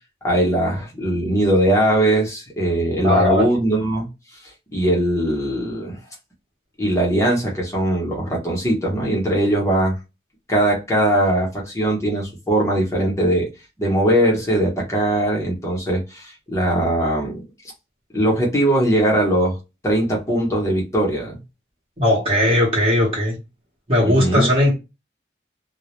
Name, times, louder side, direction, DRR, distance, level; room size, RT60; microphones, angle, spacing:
voice 1, 0.2-4.1 4.7-6.0 6.8-10.0 10.5-13.5 13.8-17.4 18.1-19.6 19.8-21.4 24.0-24.5, right 1 dB, 15° left, 0.7 m, -20 dB
voice 2, 3.0-3.5 22.0-23.4 23.9-24.8, left 1 dB, 30° right, 0.9 m, -18 dB
2.2 x 2.0 x 2.9 m
head